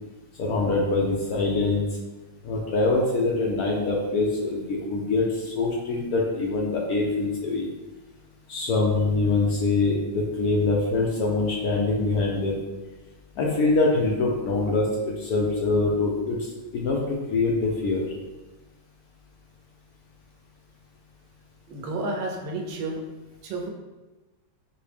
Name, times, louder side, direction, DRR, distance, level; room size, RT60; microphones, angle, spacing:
voice 1, 0.4-1.8 2.4-7.7 8.5-12.6 13.4-16.4 16.7-18.0, left 3 dB, 75° left, -2 dB, 0.9 m, -24 dB
voice 2, 21.7-23.0 23.4-23.7, right 2 dB, 90° right, 2 dB, 1.4 m, -31 dB
4.6 x 2.0 x 3.3 m, 1.1 s
omnidirectional pair, 2.0 m